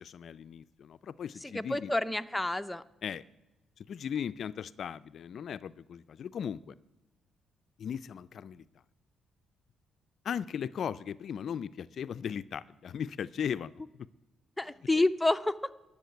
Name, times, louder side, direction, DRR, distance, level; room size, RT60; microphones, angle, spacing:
voice 1, 0.0-1.9 3.0-3.2 3.8-6.7 7.8-8.6 10.2-13.7 14.0-14.1, left 8 dB, 60° left, 16 dB, 0.3 m, -37 dB
voice 2, 1.4-2.8 14.6-15.6, left 2 dB, 10° left, 10 dB, 0.6 m, -29 dB
12.5 x 7.2 x 9.2 m, 1.1 s
cardioid pair, 90°, 0 cm